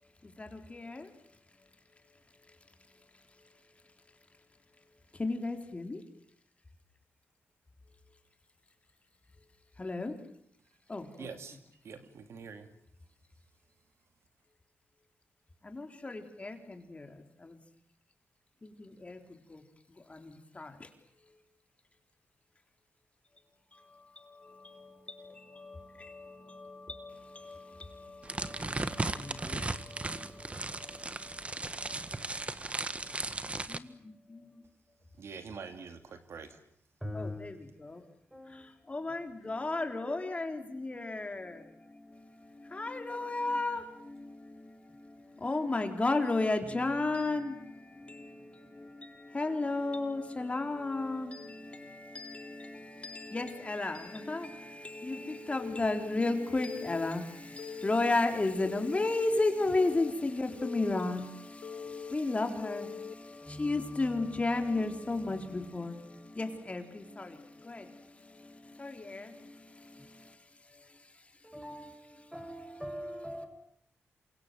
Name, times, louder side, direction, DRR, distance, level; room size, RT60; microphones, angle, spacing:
voice 1, 0.0-6.0 8.1-8.2 9.3-9.5 9.7-10.2 10.9-11.4 15.6-17.6 18.6-20.9 21.2-21.4 23.7-33.3 33.7-34.7 37.1-38.1 38.4-72.6, left 2 dB, 30° left, 3.8 m, -35 dB
voice 2, 11.2-11.6 11.8-12.7 35.2-36.6, right 5 dB, 75° right, 2.8 m, -45 dB
sound 1, 28.2-33.8, right 2 dB, 25° right, 1.6 m, -36 dB
voice 3, 37.0-37.5 38.3-38.7 48.0-48.4 63.4-63.8 71.4-73.5, equal, 5° right, 7.4 m, -42 dB
Telephone, 55.6-56.1 56.6-57.1 57.6-58.1 58.6-59.1 59.6-60.1 60.6-61.1 61.6-62.1 62.6-63.1, left 6 dB, 75° left, 1.4 m, -42 dB
28.0 x 24.5 x 7.7 m
cardioid pair, 75°, 5 cm